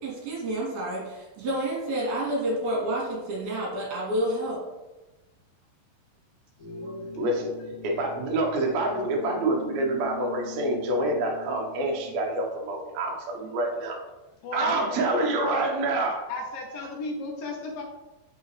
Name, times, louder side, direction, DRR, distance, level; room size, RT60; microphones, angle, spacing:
voice 1, 0.0-4.6, right 1 dB, 50° right, -5 dB, 3.4 m, -29 dB
voice 2, 6.6-7.1 14.4-15.0 16.3-17.8, left 3 dB, 75° left, 1 dB, 2.2 m, -35 dB
sound 1, 6.6-12.7, left 3 dB, 40° left, 1.8 m, -41 dB
voice 3, 7.1-7.5 7.8-14.0 14.5-16.3, right 2 dB, 90° right, 0 dB, 1.5 m, -27 dB
6.1 x 5.5 x 3.2 m, 1.1 s
omnidirectional pair, 4.7 m